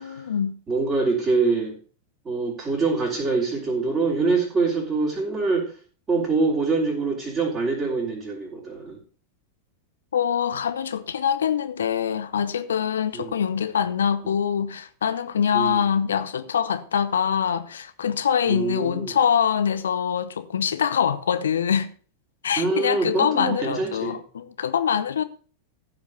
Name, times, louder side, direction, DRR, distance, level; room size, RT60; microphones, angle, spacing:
voice 1, 0.0-0.6 10.1-21.9 22.4-25.2, left 8 dB, 65° left, 0.9 m, -24 dB
voice 2, 0.7-1.8 2.2-5.7 6.1-9.0 13.1-13.4 15.5-15.9 18.4-19.1 22.6-24.2, right 3 dB, 20° right, 4.5 m, -24 dB
15.0 x 5.2 x 6.5 m
figure-of-eight pair, 90°, 0 cm